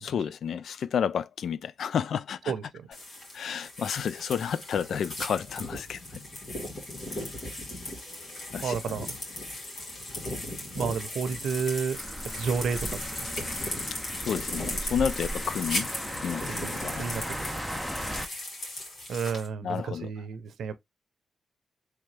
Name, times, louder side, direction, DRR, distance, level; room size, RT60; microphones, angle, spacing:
voice 1, 0.0-2.5 3.3-6.2 8.5-9.0 14.2-15.9 16.2-17.3 19.6-20.1, left 7 dB, 80° left, 0.3 m, -31 dB
voice 2, 2.5-2.9 8.6-9.1 10.7-12.0 12.3-12.9 13.2-13.3 16.5-17.5 19.1-20.7, right 6 dB, 85° right, 0.6 m, -31 dB
sound 1, 2.9-19.5, left 1 dB, 55° left, 2.4 m, -37 dB
sound 2, 11.9-18.3, equal, ahead, 0.7 m, -37 dB
3.8 x 3.4 x 3.2 m
cardioid pair, 85°, 0 cm